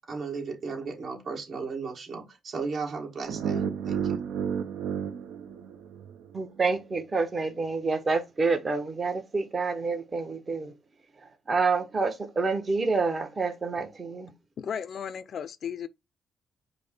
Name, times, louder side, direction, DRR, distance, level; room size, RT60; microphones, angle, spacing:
voice 1, 0.1-4.2, right 4 dB, 60° right, 1.7 m, -35 dB
sound 1, 3.3-6.3, right 7 dB, 85° right, 0.6 m, -31 dB
voice 2, 6.3-10.7 11.5-14.3, right 4 dB, 30° right, 0.8 m, -28 dB
voice 3, 14.6-15.9, left 8 dB, 55° left, 0.4 m, -35 dB
5.1 x 2.0 x 4.3 m
cardioid pair, 90°, 0 cm